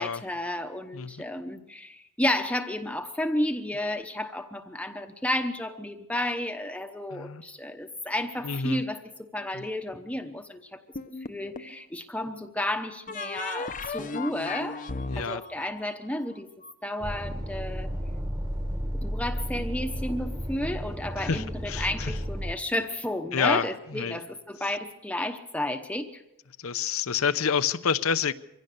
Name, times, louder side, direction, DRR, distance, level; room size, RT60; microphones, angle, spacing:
voice 1, 0.0-10.8 11.3-14.8 15.2-16.5 16.8-17.9 18.9-26.2, left 1 dB, 5° left, 6 dB, 0.9 m, -32 dB
voice 2, 7.1-7.4 8.4-8.8 9.5-9.6 15.1-15.4 21.2-22.2 23.3-24.2 26.6-28.3, left 6 dB, 75° left, 13 dB, 0.8 m, -28 dB
sound 1, 11.0-11.8 13.1-16.7, left 3 dB, 40° left, 0.8 m, -36 dB
sound 2, 17.0-22.5, equal, 20° right, 1.4 m, -33 dB
24.0 x 16.5 x 6.7 m, 0.87 s
head